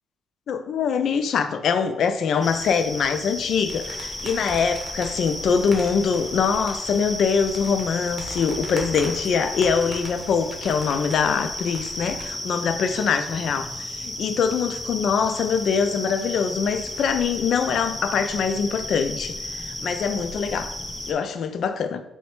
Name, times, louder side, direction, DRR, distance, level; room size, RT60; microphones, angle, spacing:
voice 1, 0.5-20.7 21.1-22.0, left 6 dB, 65° left, 10 dB, 0.3 m, -23 dB
sound 1, 2.4-21.1, left 1 dB, 15° left, 0.7 m, -34 dB
sound 2, 3.7-12.3, right 2 dB, 40° right, 1.0 m, -40 dB
3.8 x 2.1 x 4.4 m, 0.99 s
cardioid pair, 90°, 0 cm